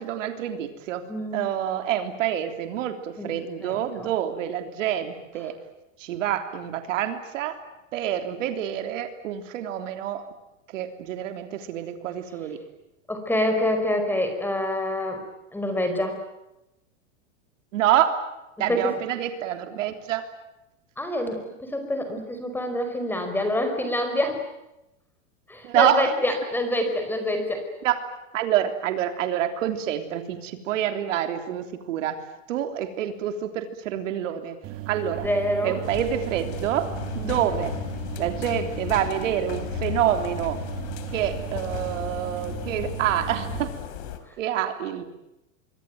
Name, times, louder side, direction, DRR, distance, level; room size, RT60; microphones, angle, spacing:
voice 1, 0.0-1.1 1.3-5.5 6.0-7.6 7.9-10.2 10.7-12.6 17.7-18.2 18.6-20.3 22.1-22.2 25.6-26.1 27.8-28.0 28.3-32.2 32.5-34.6 34.9-35.3 35.6-37.8 38.2-40.6 41.1-43.7 44.4-45.0, right 10 dB, 70° right, 7 dB, 3.4 m, -27 dB
voice 2, 1.1-1.4 3.2-3.3 3.6-4.1 13.1-15.2 15.5-16.2 18.7-18.9 21.0-24.4 25.5-27.6 35.2-35.8 37.2-37.5, left 1 dB, 5° left, 6 dB, 5.0 m, -26 dB
sound 1, 34.6-43.6, right 16 dB, 35° right, 2.8 m, -36 dB
sound 2, 35.8-44.2, left 12 dB, 55° left, 3.9 m, -35 dB
26.0 x 23.5 x 9.2 m, 0.91 s
supercardioid pair, 145°, 39 cm